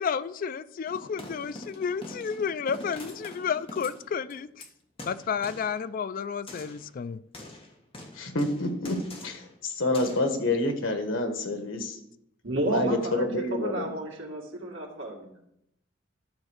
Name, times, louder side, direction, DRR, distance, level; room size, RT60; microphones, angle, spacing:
voice 1, 0.0-4.5 5.0-7.2, left 6 dB, 45° left, 0.3 m, -31 dB
sound 1, 0.9-4.7 5.0-5.8 6.5-6.9 7.3-9.5 9.9-10.2, left 1 dB, 30° left, 1.5 m, -44 dB
voice 2, 8.2-9.0 9.2-12.0 12.7-13.9, left 2 dB, 85° left, 1.5 m, -28 dB
voice 3, 12.4-13.3 13.5-15.4, right 1 dB, 70° right, 2.1 m, -32 dB
12.0 x 4.3 x 6.4 m
head